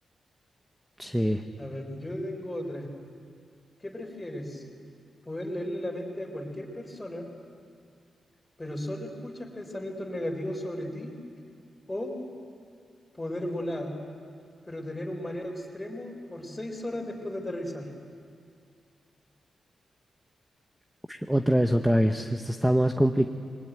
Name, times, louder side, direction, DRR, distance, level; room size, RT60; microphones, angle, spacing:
voice 1, 1.0-1.4 21.3-23.3, equal, 5° right, 6 dB, 0.8 m, -23 dB
voice 2, 1.6-2.9 3.8-4.6 5.3-7.3 8.6-11.1 11.9-12.1 13.1-13.9 14.6-17.9, left 1 dB, 15° left, 2 dB, 4.0 m, -35 dB
27.0 x 22.5 x 9.2 m, 2.3 s
wide cardioid pair, 150°, 0 cm